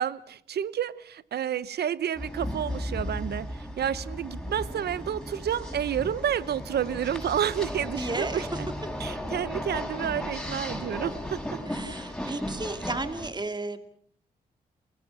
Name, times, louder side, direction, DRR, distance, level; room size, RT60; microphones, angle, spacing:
voice 1, 0.0-8.7 9.0-11.6 12.2-12.4, right 9 dB, 75° right, 0.9 m, -30 dB
sound 1, 2.2-13.3, left 1 dB, 5° left, 7.2 m, -35 dB
voice 2, 8.0-8.4 11.7-13.8, right 2 dB, 25° right, 2.5 m, -33 dB
29.5 x 20.5 x 6.1 m
supercardioid pair, 50°, 17 cm